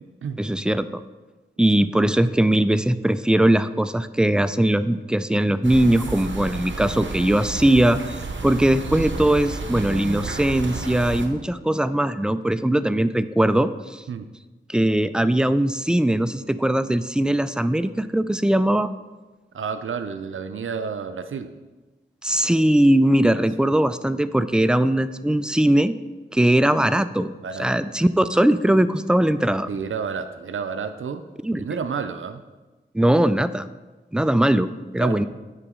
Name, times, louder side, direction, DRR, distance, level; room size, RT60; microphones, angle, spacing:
voice 1, 0.4-1.0 1.6-8.2 8.4-14.0 14.7-18.9 22.2-25.9 26.3-27.3 27.6-29.7 31.4-31.6 32.9-33.7 34.1-35.3, right 1 dB, 5° right, 13 dB, 0.3 m, -20 dB
sound 1, 5.6-11.3, right 3 dB, 70° right, 0.8 m, -31 dB
voice 2, 19.5-21.5 23.3-23.4 27.4-27.8 29.7-31.2 31.6-32.4 35.0-35.3, right 6 dB, 90° right, 10 dB, 0.4 m, -30 dB
9.8 x 5.0 x 3.7 m, 1.2 s
wide cardioid pair, 45°, 20 cm